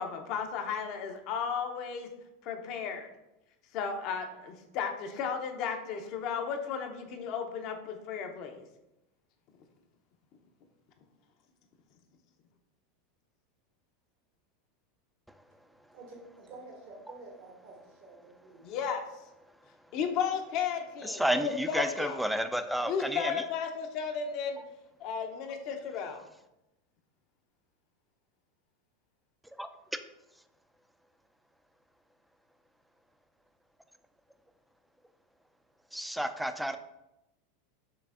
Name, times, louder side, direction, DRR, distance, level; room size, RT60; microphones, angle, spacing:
voice 1, 0.0-2.1 2.4-3.1 3.7-8.6 18.6-19.0 19.9-22.2 22.9-24.6 25.0-26.2, left 7 dB, 55° left, 0.7 m, -34 dB
voice 2, 15.9-18.7, right 2 dB, 60° right, 1.0 m, -50 dB
voice 3, 21.0-23.4 29.6-29.7 35.9-36.8, equal, ahead, 0.4 m, -31 dB
5.8 x 3.2 x 2.5 m
hypercardioid pair, 95°, 0 cm